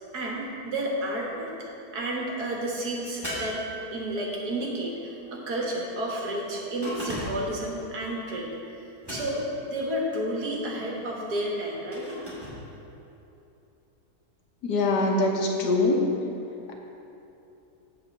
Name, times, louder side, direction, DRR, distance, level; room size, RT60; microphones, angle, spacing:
voice 1, 0.1-1.5 1.9-3.6 3.9-12.1, right 1 dB, 75° right, -2 dB, 1.9 m, -31 dB
sound 1, 3.2-4.3 6.8-7.6 9.0-9.6 11.9-12.6, equal, 15° right, 2.2 m, -35 dB
voice 2, 14.6-16.0, left 2 dB, 85° left, 0 dB, 1.6 m, -23 dB
8.6 x 4.3 x 7.1 m, 2.9 s
omnidirectional pair, 1.7 m